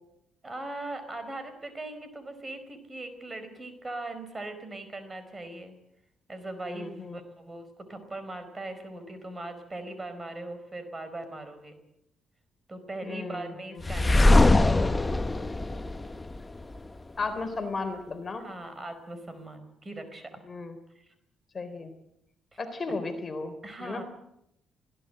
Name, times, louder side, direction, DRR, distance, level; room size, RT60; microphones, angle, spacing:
voice 1, 0.4-5.8 6.3-11.8 12.7-14.9 18.4-20.4 20.9-21.1 22.5-22.6 23.6-24.0, right 2 dB, 25° right, 10 dB, 4.7 m, -40 dB
voice 2, 6.6-7.2 13.0-13.5 17.2-18.5 20.5-20.8 21.5-21.9 22.6-24.0, left 3 dB, 35° left, 7 dB, 3.7 m, -34 dB
sound 1, 13.8-16.8, left 2 dB, 20° left, 0.9 m, -22 dB
21.5 x 16.5 x 7.8 m, 0.80 s
cardioid pair, 90°, 0 cm